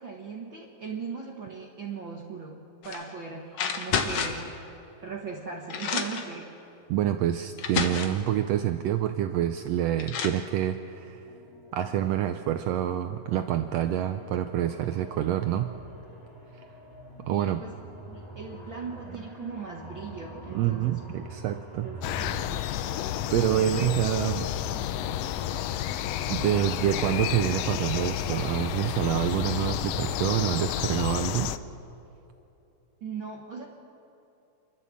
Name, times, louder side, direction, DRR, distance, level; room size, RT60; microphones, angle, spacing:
voice 1, 0.0-4.5 5.0-6.5 17.3-17.7 18.1-21.1 21.8-22.6 23.7-23.9 33.0-33.7, right 5 dB, 50° right, -1 dB, 1.7 m, -39 dB
sound 1, 2.8-3.1 3.5-4.5 5.3-5.4 5.7-6.3 7.1-7.2 7.6-8.2 9.6-9.7 10.0-10.4, left 6 dB, 60° left, 1.9 m, -30 dB
voice 2, 6.9-11.2 11.7-15.7 17.3-17.6 20.5-21.9 23.3-24.5 25.6-25.7 26.3-31.5, right 11 dB, 85° right, 8 dB, 1.5 m, -27 dB
sound 2, 11.2-30.2, equal, 10° left, 2.2 m, -46 dB
sound 3, 22.0-31.6, left 12 dB, 85° left, 1.4 m, -31 dB
28.5 x 12.0 x 7.5 m, 2.9 s
omnidirectional pair, 3.6 m